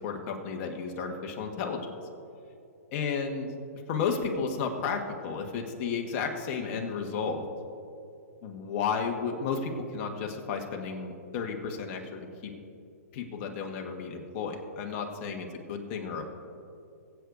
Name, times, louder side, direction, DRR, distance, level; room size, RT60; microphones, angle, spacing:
voice 1, 0.0-1.9 2.9-3.5 3.9-7.4 8.4-12.5 13.1-16.3, left 5 dB, 35° left, 2 dB, 1.3 m, -33 dB
20.5 x 8.3 x 2.6 m, 2.6 s
hypercardioid pair, 140°, 9 cm